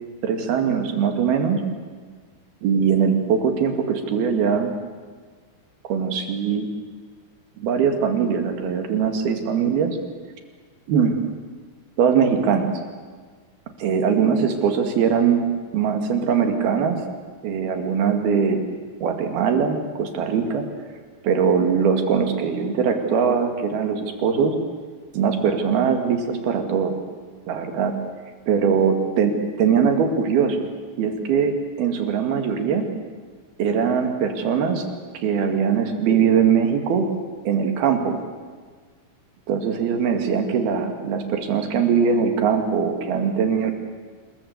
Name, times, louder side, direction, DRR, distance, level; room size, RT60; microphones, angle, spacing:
voice 1, 0.2-1.6 2.6-4.7 5.9-6.7 7.6-10.0 10.9-11.2 12.0-12.7 13.8-15.5 15.7-17.0 17.4-18.7 19.0-20.7 21.2-24.6 25.1-27.0 27.5-27.9 28.5-30.7 31.0-32.8 33.6-34.9 35.2-37.1 37.5-38.2 39.5-43.7, right 6 dB, 80° right, 5 dB, 4.1 m, -21 dB
27.0 x 21.5 x 8.1 m, 1.5 s
omnidirectional pair, 4.4 m